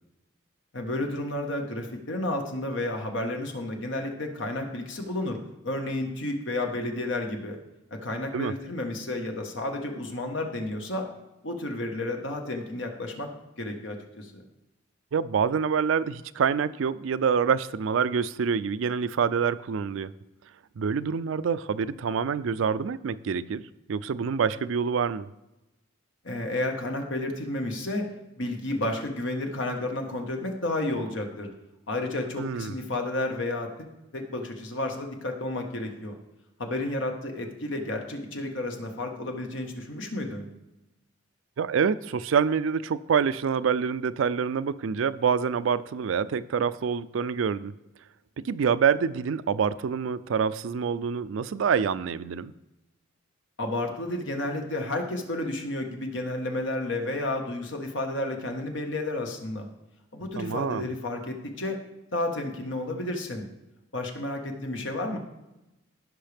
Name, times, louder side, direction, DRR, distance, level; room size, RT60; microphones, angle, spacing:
voice 1, 0.7-5.4 5.6-7.6 7.9-11.1 11.4-13.3 13.6-14.4 26.2-28.1 28.3-31.5 31.9-33.9 34.1-36.1 36.6-40.5 53.6-59.7 60.1-61.8 62.1-63.4 63.9-65.2, left 1 dB, 70° left, 3 dB, 1.4 m, -31 dB
voice 2, 15.1-20.1 20.8-23.6 23.9-25.3 32.4-32.7 41.6-47.7 48.4-52.5 60.4-60.9, right 6 dB, 80° right, 16 dB, 0.4 m, -26 dB
16.0 x 5.6 x 3.4 m, 0.96 s
head